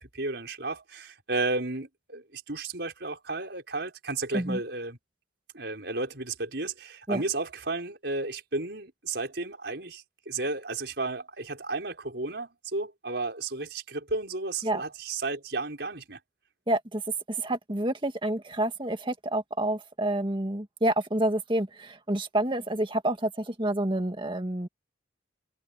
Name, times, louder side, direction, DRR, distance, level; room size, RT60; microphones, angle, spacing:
voice 1, 0.0-5.0 5.5-16.2, right 3 dB, 60° right, 6.5 m, -33 dB
voice 2, 16.7-17.0 17.3-24.7, right 1 dB, 25° right, 2.0 m, -28 dB
head